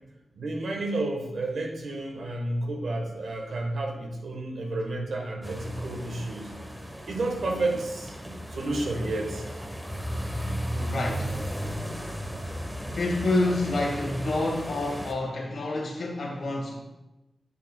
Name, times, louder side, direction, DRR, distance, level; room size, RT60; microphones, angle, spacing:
voice 1, 0.3-6.5 7.1-9.4, right 2 dB, 80° right, 1.2 m, -31 dB
sound 1, 5.4-15.1, equal, 5° right, 1.0 m, -35 dB
voice 2, 10.7-11.4 12.9-16.8, left 2 dB, 75° left, 1.7 m, -28 dB
8.8 x 6.2 x 2.3 m
cardioid pair, 65°, 0 cm